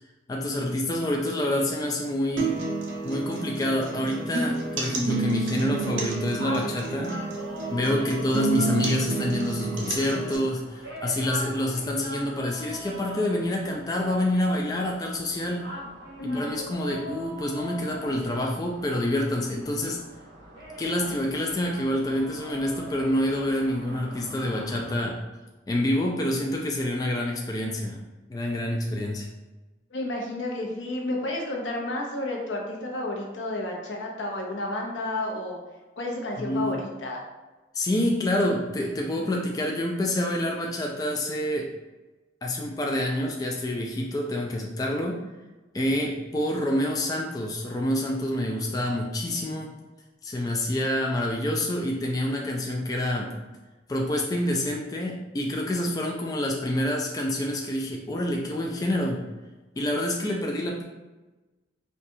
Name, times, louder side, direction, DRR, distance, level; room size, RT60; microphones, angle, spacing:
voice 1, 0.3-2.5 3.0-7.2 7.7-15.7 16.3-20.0 20.8-25.2 25.7-28.0 28.3-29.3 36.4-36.8 37.7-41.7 42.4-45.2 45.7-49.7 50.2-53.3 53.9-59.2 59.8-60.8, left 1 dB, 20° left, -1 dB, 0.3 m, -27 dB
sound 1, 2.4-10.4, right 3 dB, 85° right, 0.6 m, -30 dB
sound 2, 5.8-25.0, equal, 65° right, 1.1 m, -42 dB
voice 2, 16.2-16.5 29.9-35.6 36.0-37.2, left 1 dB, 85° left, 0 dB, 0.7 m, -31 dB
4.0 x 2.3 x 2.7 m, 1.1 s
head